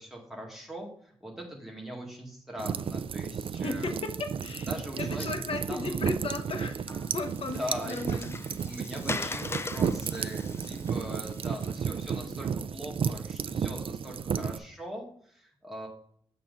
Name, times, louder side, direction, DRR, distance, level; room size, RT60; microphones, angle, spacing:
voice 1, 0.0-4.0 4.7-5.4 5.7-6.0 7.4-8.1 8.5-15.9, equal, 5° right, -1 dB, 2.0 m, -41 dB
sound 1, 2.6-14.6, right 7 dB, 60° right, 0.4 m, -33 dB
voice 2, 3.5-8.4 8.7-8.8, left 3 dB, 65° left, 6 dB, 1.1 m, -36 dB
Water, 6.9-12.2, left 3 dB, 25° left, 0.3 m, -40 dB
7.3 x 3.9 x 5.5 m, 0.62 s
wide cardioid pair, 115°, 11 cm